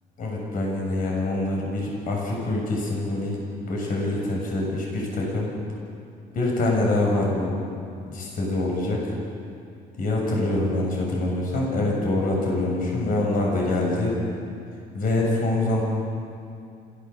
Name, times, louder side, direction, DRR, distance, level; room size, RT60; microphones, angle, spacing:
voice 1, 0.2-5.5 6.3-7.6 8.1-9.0 10.0-14.2 14.9-15.8, left 2 dB, 55° left, -2 dB, 6.9 m, -25 dB
27.0 x 15.0 x 7.1 m, 2.5 s
cardioid pair, 110°, 17 cm